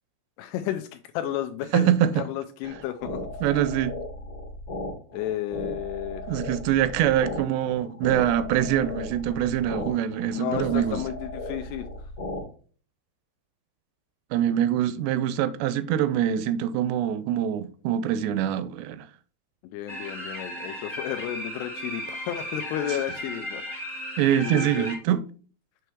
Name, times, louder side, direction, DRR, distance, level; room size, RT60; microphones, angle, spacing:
voice 1, 0.4-3.3 5.1-6.3 10.3-11.9 19.6-23.6 24.4-24.9, left 11 dB, 85° left, 2.4 m, -32 dB
voice 2, 1.7-2.1 3.4-4.0 6.3-11.0 14.3-19.1 24.2-25.2, right 10 dB, 85° right, 2.6 m, -24 dB
sound 1, 2.6-12.4, left 1 dB, 55° left, 1.6 m, -36 dB
sound 2, 19.9-25.0, equal, 20° left, 0.6 m, -35 dB
7.9 x 3.1 x 4.5 m
omnidirectional pair, 4.9 m